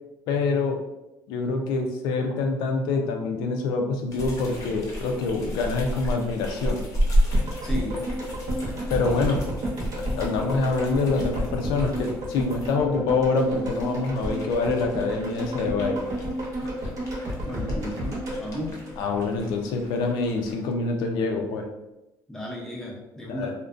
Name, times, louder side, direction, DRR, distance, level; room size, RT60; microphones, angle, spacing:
voice 1, 0.3-0.8 1.3-6.8 8.9-9.4 10.2-16.0 19.0-21.6 23.3-23.5, left 3 dB, 90° left, 3 dB, 0.4 m, -26 dB
sound 1, 4.1-12.7 13.3-20.6, equal, 45° left, 0.6 m, -32 dB
sound 2, 7.3-19.5 19.8-19.9, equal, 50° right, 0.8 m, -31 dB
voice 2, 7.6-8.1 17.5-18.8 22.3-23.5, equal, 5° left, -3 dB, 0.5 m, -34 dB
2.5 x 2.1 x 2.4 m, 0.96 s
cardioid pair, 135°, 7 cm